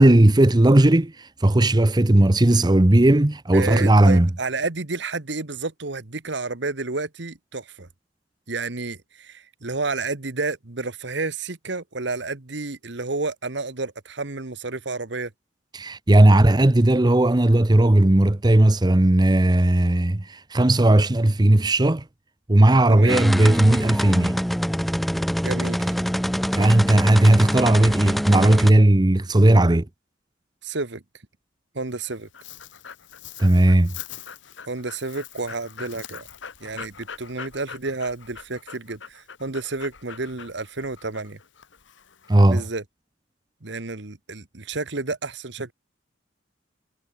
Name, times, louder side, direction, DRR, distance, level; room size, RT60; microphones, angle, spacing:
voice 1, 0.0-4.3 15.7-22.0 22.5-24.4 26.5-29.9 33.4-33.9 42.3-42.6, right 1 dB, 20° right, 0.8 m, -16 dB
voice 2, 3.5-7.9 8.5-15.3 22.9-23.2 25.4-26.0 30.6-31.0 31.7-32.3 34.7-36.3 36.6-41.4 42.5-42.8 43.6-45.7, right 3 dB, 65° right, 1.5 m, -30 dB
sound 1, 23.1-28.7, equal, ahead, 1.1 m, -25 dB
Dog, 31.9-42.7, left 7 dB, 75° left, 1.6 m, -42 dB
head